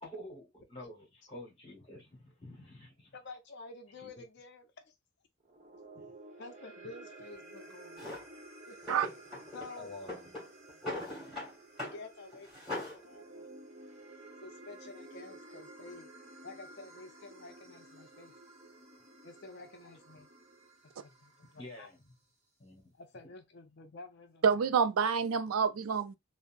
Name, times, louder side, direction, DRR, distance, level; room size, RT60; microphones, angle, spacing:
voice 1, 0.0-3.2 3.9-4.1 5.9-6.1 9.8-10.4 11.2-11.3 21.6-22.0 22.6-22.9, left 1 dB, 25° left, 1.3 m, -49 dB
voice 2, 3.1-4.6 6.4-8.0 8.7-9.0 9.5-9.9 11.8-13.5 14.4-16.1 16.4-18.3 19.2-20.3 20.8-21.9 23.0-24.4, left 3 dB, 55° left, 0.5 m, -50 dB
sound 1, 5.4-21.9, right 2 dB, 30° right, 1.0 m, -53 dB
Drawer open or close, 8.0-8.2 8.8-9.7 10.0-11.5 11.8-12.0 12.3-13.0, left 2 dB, ahead, 2.1 m, -40 dB
voice 3, 24.4-26.2, right 6 dB, 80° right, 0.4 m, -28 dB
3.8 x 2.0 x 2.5 m
head